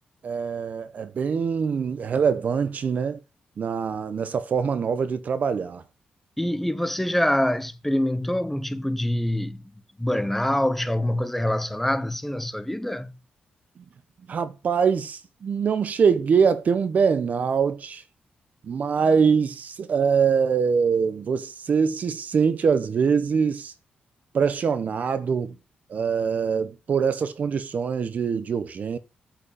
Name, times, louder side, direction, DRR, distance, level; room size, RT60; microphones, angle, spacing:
voice 1, 0.2-3.2 3.6-5.8 14.3-18.0 18.6-23.7 24.3-25.6 25.9-29.0, right 6 dB, 55° right, 0.9 m, -23 dB
voice 2, 6.4-9.6 10.0-13.1, left 1 dB, 5° left, 0.7 m, -25 dB
8.9 x 4.8 x 5.1 m
cardioid pair, 100°, 3 cm